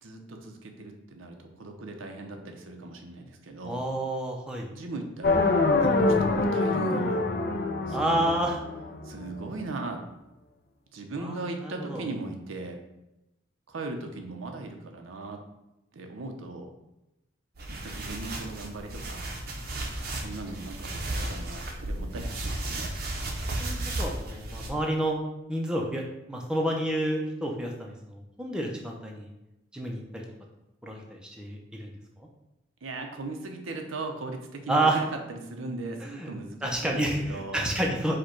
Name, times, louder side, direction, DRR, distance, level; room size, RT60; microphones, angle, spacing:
voice 1, 0.0-3.8 4.7-7.2 7.9-8.4 9.0-10.0 10.9-12.8 13.7-15.4 15.9-16.7 17.7-19.3 20.2-22.9 32.8-37.7, right 2 dB, 85° right, 3 dB, 0.7 m, -38 dB
voice 2, 3.6-4.7 7.9-8.6 11.2-12.0 23.6-25.2 25.5-29.3 29.7-30.2 30.8-31.9 34.7-35.0 36.0-36.3 36.6-38.2, right 1 dB, 5° right, -1 dB, 0.5 m, -29 dB
sound 1, 5.2-9.3, left 3 dB, 50° left, 0.5 m, -25 dB
sound 2, 17.6-24.7, right 1 dB, 50° right, 0.6 m, -34 dB
4.9 x 2.2 x 4.4 m, 0.92 s
head